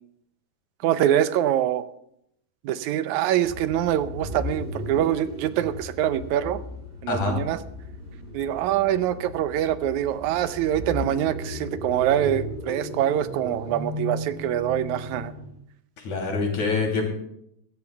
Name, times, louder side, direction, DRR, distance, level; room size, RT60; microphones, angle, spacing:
voice 1, 0.8-1.9 2.6-6.6 7.0-7.6 8.3-15.3, right 11 dB, 85° right, 12 dB, 2.1 m, -24 dB
sound 1, 3.4-15.6, equal, 15° right, 3.4 m, -36 dB
voice 2, 16.0-17.1, left 4 dB, 80° left, 1 dB, 4.4 m, -25 dB
21.0 x 16.0 x 2.3 m, 0.75 s
omnidirectional pair, 3.3 m